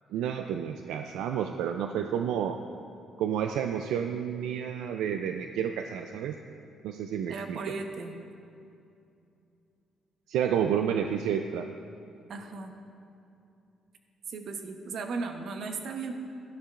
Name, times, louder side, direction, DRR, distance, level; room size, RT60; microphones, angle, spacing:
voice 1, 0.1-2.6 3.2-6.4 6.8-7.6 10.3-11.7, right 8 dB, 90° right, 6 dB, 0.3 m, -30 dB
voice 2, 7.3-8.1 12.3-12.7 14.3-16.1, right 4 dB, 65° right, 5 dB, 0.9 m, -36 dB
13.0 x 11.0 x 2.5 m, 2.6 s
cardioid pair, 90°, 0 cm